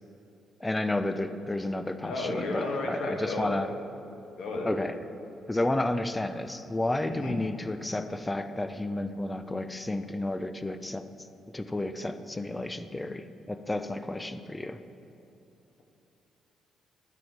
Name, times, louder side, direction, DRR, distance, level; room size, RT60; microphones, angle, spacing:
voice 1, 0.6-3.7 4.6-4.9 5.5-11.1 11.5-14.8, left 2 dB, 15° left, 10 dB, 0.4 m, -31 dB
voice 2, 2.0-3.6 4.4-4.7 7.0-7.4, left 2 dB, 75° left, 1 dB, 1.1 m, -33 dB
10.0 x 4.0 x 4.5 m, 3.0 s
cardioid pair, 90°, 0 cm